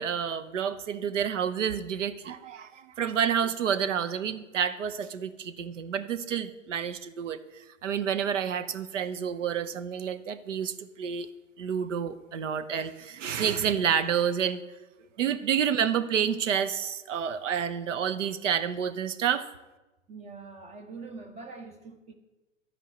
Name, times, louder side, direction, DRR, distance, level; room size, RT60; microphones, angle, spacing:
voice 1, 0.0-11.3 11.6-14.6 15.2-19.4, right 8 dB, 70° right, 0.9 m, -29 dB
voice 2, 20.1-22.1, right 4 dB, 15° right, 1.1 m, -44 dB
13.0 x 4.7 x 7.6 m
figure-of-eight pair, 100°, 39 cm